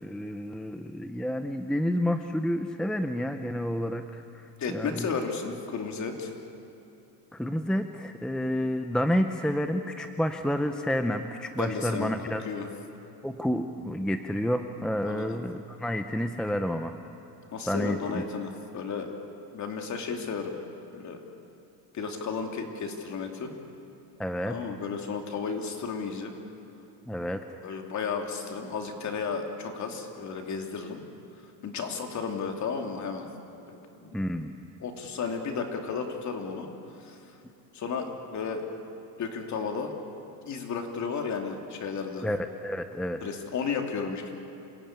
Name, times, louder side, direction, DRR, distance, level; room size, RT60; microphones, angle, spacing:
voice 1, 0.0-4.4 4.7-5.1 7.3-12.4 13.2-16.9 17.7-18.2 24.2-24.6 27.1-27.4 34.1-34.5 42.2-43.2, equal, ahead, 7 dB, 0.7 m, -29 dB
voice 2, 4.6-6.3 11.6-12.7 15.0-15.4 17.5-19.1 19.5-20.6 20.9-21.2 21.9-23.5 24.5-26.3 27.6-31.0 31.6-33.3 33.7-34.2 34.8-36.7 37.0-37.3 37.7-38.6 39.2-39.9 40.5-42.3 43.2-44.3, left 5 dB, 40° left, 3 dB, 2.9 m, -33 dB
28.0 x 17.0 x 9.0 m, 2.8 s
cardioid pair, 140°, 45 cm